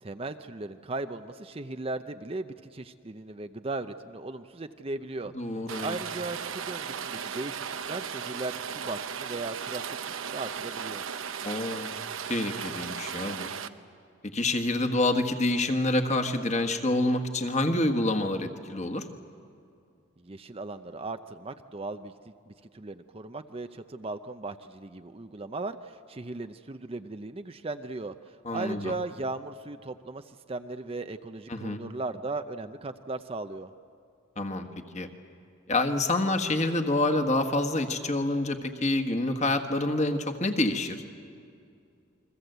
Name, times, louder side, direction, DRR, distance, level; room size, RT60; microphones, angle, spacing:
voice 1, 0.0-11.0 20.2-33.7, right 2 dB, 30° right, 9 dB, 0.6 m, -37 dB
voice 2, 5.3-5.9 11.4-11.9 12.3-13.5 14.3-19.1 28.4-28.9 31.5-31.8 34.4-34.7 34.9-35.1 35.7-41.0, left 2 dB, 35° left, 6 dB, 1.6 m, -27 dB
Rain, 5.7-13.7, right 7 dB, 75° right, 0.9 m, -36 dB
29.5 x 22.5 x 8.1 m, 2.5 s
head